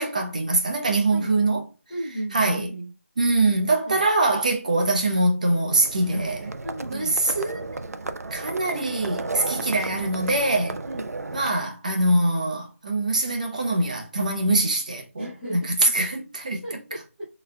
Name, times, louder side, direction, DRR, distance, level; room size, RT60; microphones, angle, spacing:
voice 1, 0.0-1.6 2.3-2.7 3.2-6.5 6.9-7.1 7.4-7.8 8.3-10.8 11.3-16.6, right 2 dB, 30° right, 0.7 m, -23 dB
voice 2, 1.9-2.9 3.8-4.0 6.6-7.1 10.8-11.1 15.2-15.6 16.6-17.3, right 1 dB, 10° left, 1.5 m, -35 dB
Livestock farm animals working animals, 5.7-11.5, right 3 dB, 90° right, 0.6 m, -34 dB
6.2 x 3.1 x 2.2 m
figure-of-eight pair, 175°, 8 cm